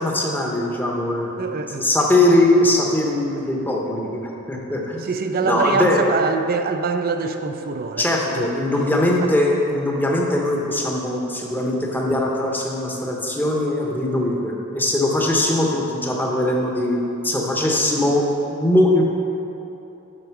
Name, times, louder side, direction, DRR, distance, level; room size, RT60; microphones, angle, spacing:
voice 1, 0.0-1.4 1.8-5.0 5.4-6.1 8.0-19.0, left 1 dB, 10° left, -1 dB, 0.9 m, -21 dB
voice 2, 1.4-1.9 5.0-8.5 9.2-9.3, right 4 dB, 45° right, 7 dB, 0.5 m, -24 dB
7.8 x 4.9 x 5.9 m, 3.0 s
head